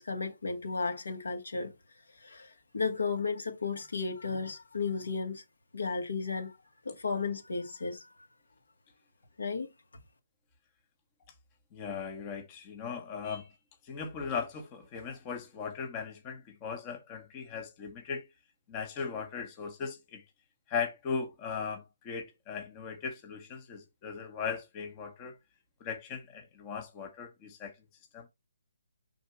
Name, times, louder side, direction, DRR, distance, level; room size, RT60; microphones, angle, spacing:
voice 1, 0.0-1.7 2.2-5.4 5.7-6.5 6.9-8.1 9.4-9.7, left 4 dB, 75° left, 2.1 m, -34 dB
voice 2, 11.7-13.5 13.8-18.2 18.7-20.2 20.7-25.3 25.8-27.7 28.1-28.3, left 6 dB, 25° left, 1.2 m, -38 dB
5.7 x 4.1 x 4.5 m
figure-of-eight pair, 145°, 0 cm